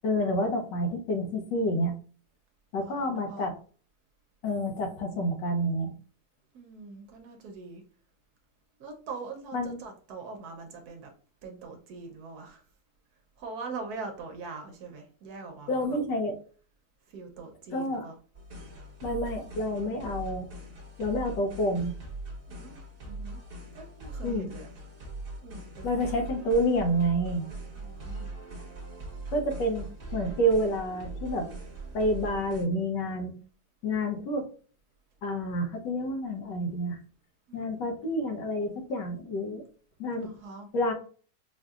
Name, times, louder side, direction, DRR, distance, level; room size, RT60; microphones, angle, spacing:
voice 1, 0.0-1.9 2.7-3.5 4.4-5.9 9.5-9.8 15.7-16.3 17.7-18.1 19.0-20.5 21.0-21.9 24.2-24.5 25.8-27.4 29.3-31.5 31.9-33.3 33.8-34.5 35.2-37.0 37.5-39.6 40.0-40.3 40.7-40.9, equal, 75° left, 1.4 m, -28 dB
voice 2, 2.8-3.5 6.5-7.8 8.8-11.1 11.4-12.6 13.4-16.0 17.1-18.2 22.5-22.8 23.0-23.4 23.7-24.7 25.4-26.2 27.7-28.3 37.5-37.6 40.2-40.7, right 4 dB, 65° right, 1.1 m, -42 dB
sound 1, 18.3-32.6, right 2 dB, 40° right, 0.9 m, -41 dB
4.5 x 2.7 x 2.3 m
omnidirectional pair, 1.9 m